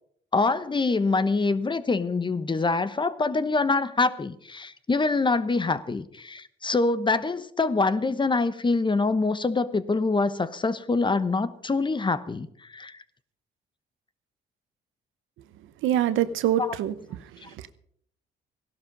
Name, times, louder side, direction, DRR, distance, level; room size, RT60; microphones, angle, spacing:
voice 1, 0.3-12.5 12.7-13.0 16.6-16.7 17.4-17.5, left 3 dB, 25° left, 15 dB, 1.0 m, -25 dB
voice 2, 15.8-17.7, right 10 dB, 90° right, 13 dB, 1.0 m, -26 dB
16.0 x 12.0 x 5.3 m, 0.65 s
cardioid pair, 90°, 20 cm